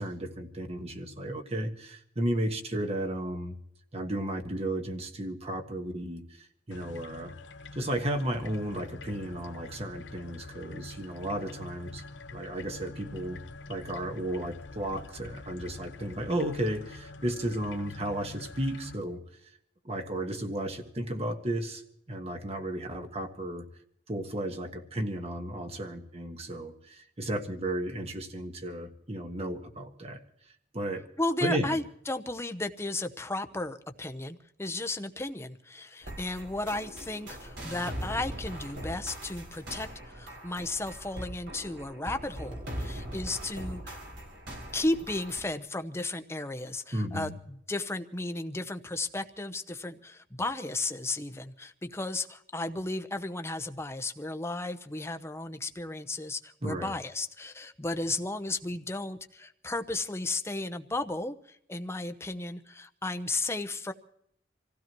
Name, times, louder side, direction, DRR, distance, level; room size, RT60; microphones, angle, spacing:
voice 1, 0.0-3.5 3.9-7.3 7.7-12.0 12.3-13.4 13.7-19.2 19.8-21.8 22.1-23.7 24.1-30.2 30.7-31.1 31.4-31.8 46.9-47.4 56.6-56.9, right 1 dB, 35° right, 5 dB, 1.5 m, -34 dB
sound 1, 6.7-19.0, left 3 dB, 85° left, 0.8 m, -46 dB
voice 2, 31.2-44.0 44.7-63.9, left 2 dB, 15° left, 9 dB, 0.8 m, -34 dB
sound 2, 36.0-45.4, equal, 70° right, 5.3 m, -41 dB
27.0 x 16.0 x 3.1 m, 0.72 s
head